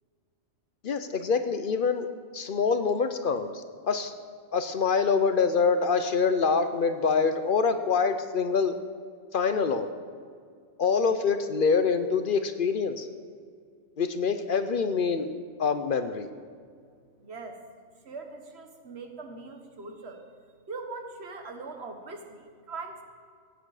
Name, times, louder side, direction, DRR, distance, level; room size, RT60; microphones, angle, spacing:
voice 1, 0.8-2.1 2.3-4.1 4.5-8.8 9.3-9.9 10.8-13.1 14.0-15.3 15.6-16.3, left 5 dB, 55° left, 9 dB, 0.8 m, -25 dB
voice 2, 17.2-17.6 18.0-20.2 20.7-23.0, right 3 dB, 65° right, 4 dB, 1.5 m, -41 dB
16.0 x 8.8 x 4.9 m, 2.1 s
omnidirectional pair, 1.2 m